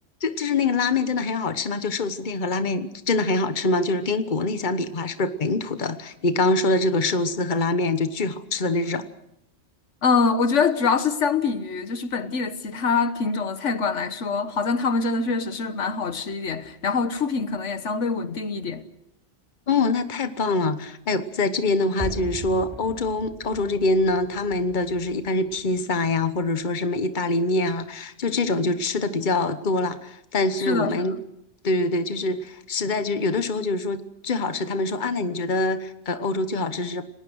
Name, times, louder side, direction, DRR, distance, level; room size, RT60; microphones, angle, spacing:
voice 1, 0.2-9.0 19.7-31.2 31.6-37.0, left 3 dB, 45° left, 1.3 m, -24 dB
voice 2, 10.0-18.8 30.6-31.1, left 5 dB, 90° left, 1.6 m, -24 dB
sound 1, 22.0-26.9 27.2-27.3, equal, 20° right, 4.0 m, -39 dB
29.5 x 19.0 x 6.4 m
omnidirectional pair, 1.2 m